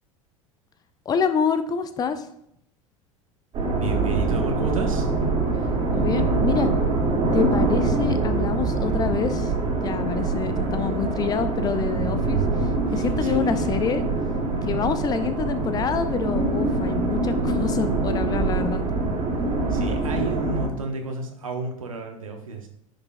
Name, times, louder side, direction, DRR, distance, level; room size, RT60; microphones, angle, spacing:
voice 1, 1.1-2.3 5.9-6.7 7.3-9.5 9.8-12.4 12.9-14.1 14.6-18.8, left 6 dB, 20° left, 11 dB, 0.5 m, -26 dB
sound 1, 3.5-20.7, right 3 dB, 35° right, 2.1 m, -24 dB
voice 2, 3.8-5.1 12.9-13.7 14.5-14.8 19.7-22.7, right 4 dB, 75° right, 3 dB, 1.0 m, -31 dB
10.5 x 5.1 x 2.3 m, 0.73 s
figure-of-eight pair, 75°, 17 cm